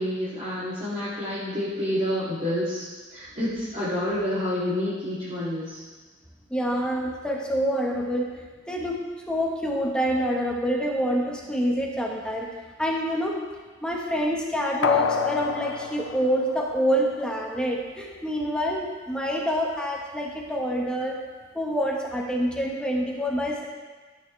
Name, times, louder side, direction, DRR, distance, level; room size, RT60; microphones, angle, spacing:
voice 1, 0.0-5.8, left 1 dB, 40° right, -13 dB, 3.2 m, -28 dB
voice 2, 6.5-8.3 8.7-9.0 9.3-12.5 12.8-13.4 13.8-21.2 21.5-23.7, equal, 5° left, -2 dB, 1.5 m, -26 dB
sound 1, 14.8-17.4 17.7-17.8, left 6 dB, 85° left, 0.6 m, -29 dB
14.5 x 9.3 x 3.5 m, 1.4 s
head